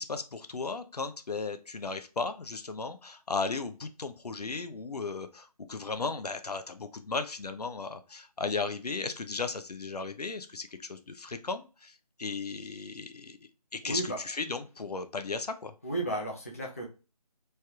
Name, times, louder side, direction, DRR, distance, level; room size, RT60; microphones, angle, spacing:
voice 1, 0.0-13.4 13.7-15.7, left 4 dB, 75° left, 9 dB, 0.5 m, -36 dB
voice 2, 13.8-14.2 15.8-16.9, right 1 dB, 20° left, -1 dB, 0.4 m, -33 dB
3.2 x 2.3 x 2.7 m, 0.32 s
figure-of-eight pair, 160°, 20 cm